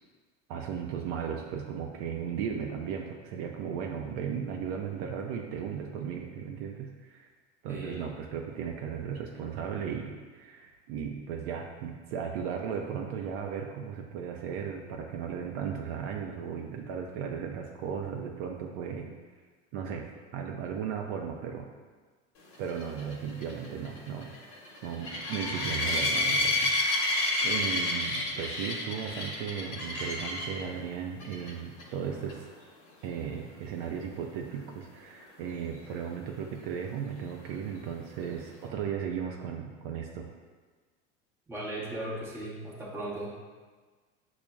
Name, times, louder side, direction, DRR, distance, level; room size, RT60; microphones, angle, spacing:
voice 1, 0.5-7.3 7.6-19.1 19.7-20.1 20.3-21.7 22.6-24.3 24.8-32.4 33.0-40.3, right 7 dB, 55° right, 2 dB, 0.4 m, -36 dB
voice 2, 7.7-8.1 41.5-43.3, right 1 dB, 5° right, -5 dB, 0.8 m, -37 dB
sound 1, 22.7-30.6 31.2-31.5 31.8-31.9 32.3-32.4 36.0-36.1, left 2 dB, 40° left, 1.0 m, -30 dB
5.9 x 2.0 x 2.3 m, 1.4 s
hypercardioid pair, 100°, 36 cm